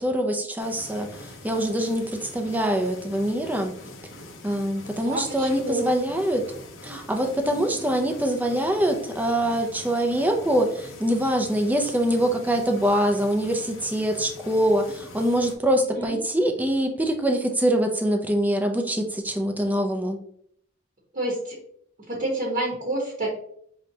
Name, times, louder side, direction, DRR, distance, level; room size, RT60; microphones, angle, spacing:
voice 1, 0.0-3.7 4.4-6.5 6.8-20.2, right 1 dB, 10° right, 4 dB, 0.5 m, -24 dB
sound 1, 0.6-15.5, left 2 dB, 85° left, 0.8 m, -43 dB
voice 2, 5.0-5.9 7.4-7.8 15.9-16.2 21.1-21.6 22.1-23.3, right 1 dB, 40° right, -3 dB, 1.0 m, -29 dB
5.3 x 3.3 x 2.7 m, 0.66 s
head